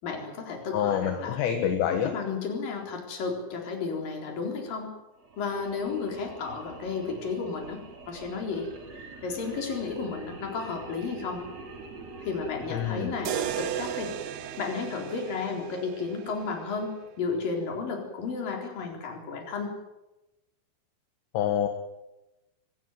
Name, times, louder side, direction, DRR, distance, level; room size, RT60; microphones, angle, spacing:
voice 1, 0.0-1.4 1.9-4.9 5.4-8.7 9.0-11.5 12.2-14.2 14.6-19.7, left 5 dB, 50° left, 2 dB, 5.6 m, -33 dB
voice 2, 0.7-2.1 12.7-13.1 21.3-21.7, left 9 dB, 75° left, 6 dB, 3.7 m, -26 dB
sound 1, 5.2-15.5, right 4 dB, 40° right, 3.4 m, -44 dB
sound 2, 13.3-17.3, right 12 dB, 70° right, 2.3 m, -36 dB
24.0 x 16.5 x 9.3 m, 1.0 s
omnidirectional pair, 5.4 m